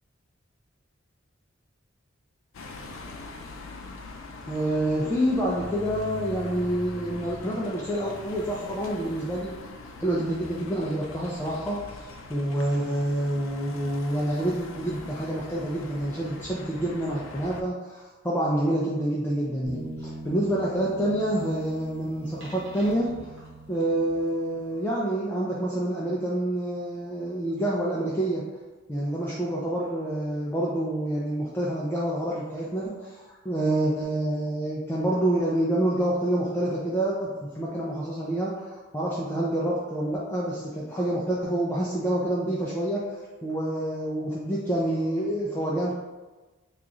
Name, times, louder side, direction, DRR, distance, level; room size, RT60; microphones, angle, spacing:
sound 1, 2.5-17.6, left 3 dB, 75° left, 0.4 m, -42 dB
voice 1, 4.5-9.6 10.0-23.1 23.7-28.4 28.9-43.0 43.4-45.9, right 1 dB, 10° left, -6 dB, 0.4 m, -27 dB
sound 2, 19.6-24.6, right 2 dB, 65° right, 1.0 m, -41 dB
3.0 x 2.4 x 3.7 m, 1.2 s
head